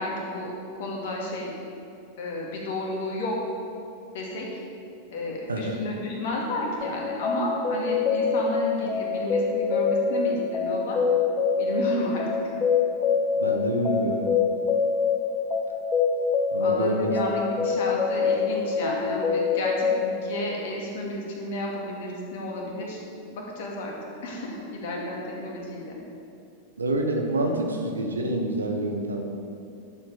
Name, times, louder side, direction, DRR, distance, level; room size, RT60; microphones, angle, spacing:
voice 1, 0.0-1.5 2.2-3.4 4.1-4.5 5.1-11.0 11.6-12.3 16.6-23.0 23.3-23.9 24.2-26.0, left 1 dB, 55° left, -2 dB, 2.3 m, -32 dB
sound 1, 6.8-20.0, left 5 dB, 25° left, 1.0 m, -25 dB
voice 2, 13.4-14.3 16.5-17.1 26.8-29.3, right 1 dB, 75° right, 2 dB, 1.2 m, -27 dB
11.5 x 7.7 x 5.0 m, 2.6 s
figure-of-eight pair, 90°, 0 cm